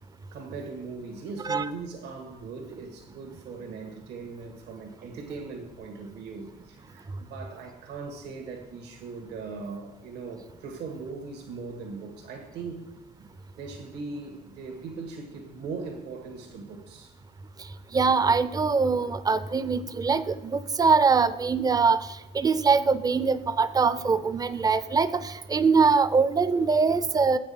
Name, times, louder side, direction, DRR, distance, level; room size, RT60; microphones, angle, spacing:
voice 1, 0.3-12.9 13.6-17.1, right 4 dB, 80° right, 3 dB, 1.8 m, -39 dB
voice 2, 17.9-22.1 22.3-27.4, right 4 dB, 20° right, 14 dB, 0.5 m, -23 dB
7.7 x 6.1 x 7.1 m, 0.91 s
cardioid pair, 110°, 17 cm